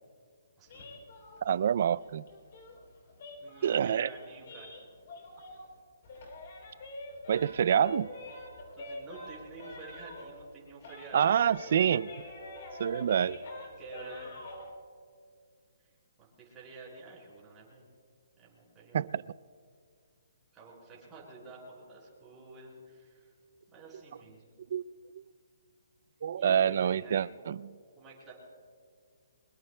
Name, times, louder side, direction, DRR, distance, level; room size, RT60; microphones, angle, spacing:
voice 1, 0.6-0.9 3.4-4.7 8.7-11.9 13.8-14.4 15.8-15.9 16.2-17.8 18.4-19.2 20.5-23.3 23.7-24.5 26.3-27.5 27.9-28.3, right 3 dB, 10° right, -5 dB, 5.1 m, -50 dB
sound 1, 0.7-5.8 6.0-10.5 10.8-14.7, left 2 dB, 45° left, 3.4 m, -46 dB
voice 2, 1.4-2.2 3.6-4.1 7.3-8.1 11.1-12.3 12.8-13.4 18.9-19.2 24.7-24.8 25.1-25.2 26.2-27.7, right 8 dB, 50° right, 20 dB, 0.3 m, -27 dB
24.0 x 22.0 x 2.2 m, 2.1 s
hypercardioid pair, 165°, 0 cm